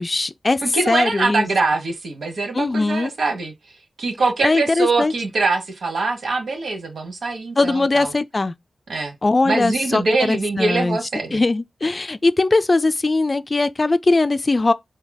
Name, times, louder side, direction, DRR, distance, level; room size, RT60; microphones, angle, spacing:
voice 1, 0.0-1.5 2.5-3.1 4.4-5.1 7.6-8.5 9.2-11.0 11.3-14.7, left 3 dB, 40° left, 0.4 m, -20 dB
voice 2, 0.6-3.5 4.0-8.1 8.9-9.2 9.4-11.4, right 3 dB, 80° right, 1.2 m, -23 dB
4.7 x 2.8 x 2.2 m
cardioid pair, 50°, 0 cm